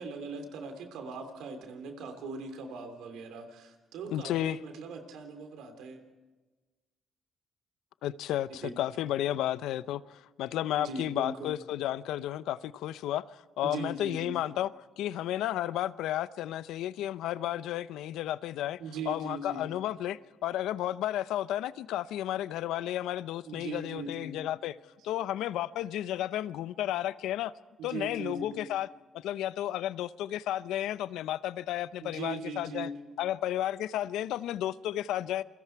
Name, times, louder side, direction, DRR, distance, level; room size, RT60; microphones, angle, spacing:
voice 1, 0.0-6.1 8.6-8.7 10.8-11.6 13.6-14.4 18.8-19.7 23.4-24.4 27.8-28.6 32.0-32.9, right 3 dB, 85° right, 3.2 m, -40 dB
voice 2, 4.1-4.6 8.0-14.7 15.0-18.8 19.1-24.7 25.0-27.5 27.8-28.9 29.1-32.9 33.2-35.4, left 13 dB, 90° left, 0.6 m, -32 dB
28.5 x 22.5 x 4.6 m
cardioid pair, 90°, 0 cm